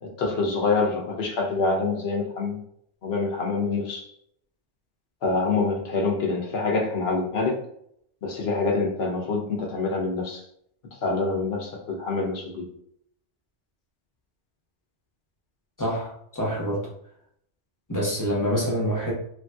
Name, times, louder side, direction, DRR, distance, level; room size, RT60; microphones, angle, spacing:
voice 1, 0.0-2.6 3.0-4.1 5.2-7.6 8.2-10.4 11.0-12.7, left 3 dB, 60° left, 0 dB, 0.9 m, -26 dB
voice 2, 15.8-16.9 17.9-19.1, equal, 20° left, -5 dB, 0.7 m, -26 dB
3.3 x 2.6 x 2.3 m, 0.70 s
omnidirectional pair, 1.2 m